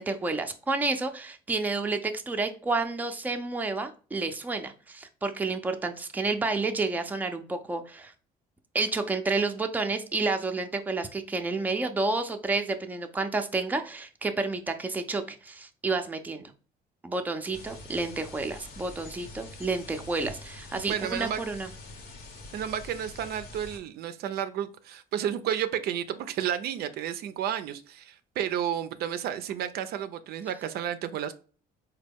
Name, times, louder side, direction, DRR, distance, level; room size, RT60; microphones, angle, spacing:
voice 1, 0.0-8.1 8.7-16.5 17.0-21.7, right 3 dB, 10° right, 0.4 m, -30 dB
sound 1, 17.5-23.8, left 2 dB, 65° left, 1.0 m, -45 dB
voice 2, 20.9-21.4 22.5-31.3, right 9 dB, 70° right, 0.4 m, -31 dB
4.1 x 2.2 x 3.4 m
cardioid pair, 110°, 17 cm